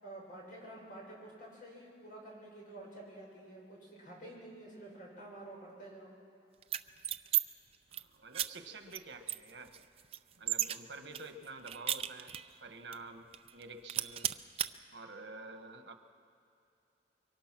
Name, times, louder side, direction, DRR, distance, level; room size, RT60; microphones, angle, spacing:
voice 1, 0.0-6.1, right 1 dB, 50° left, -2 dB, 6.4 m, -50 dB
sound 1, 6.6-7.4 7.7-8.0 8.3-8.5 8.9-9.0 9.3-10.8 11.1-12.6 12.9-13.0 13.3-13.6 13.9-14.7, right 11 dB, 35° right, 0.5 m, -34 dB
voice 2, 7.9-9.7 10.4-12.3 12.6-14.3 14.9-15.9, right 3 dB, 85° right, 7 dB, 1.3 m, -49 dB
23.5 x 22.0 x 6.1 m, 2.7 s
head